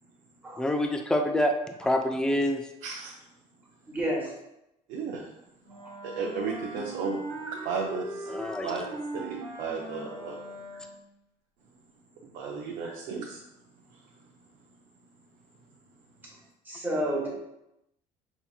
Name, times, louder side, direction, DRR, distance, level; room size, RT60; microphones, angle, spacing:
voice 1, 0.6-1.5 1.8-2.6 8.3-8.7, left 1 dB, 5° left, 4 dB, 0.3 m, -26 dB
voice 2, 2.8-3.2 4.9-5.3 6.0-7.2 7.6-8.3 8.6-8.9 9.1-10.6 12.2-13.4 13.9-14.0, right 5 dB, 75° right, -1 dB, 0.6 m, -34 dB
voice 3, 3.9-4.3 16.6-17.3, equal, 15° right, -4 dB, 1.2 m, -30 dB
Wind instrument woodwind instrument, 5.6-11.1, right 1 dB, 90° right, 1.3 m, -40 dB
5.8 x 2.7 x 2.3 m, 0.87 s
cardioid pair, 140°, 14 cm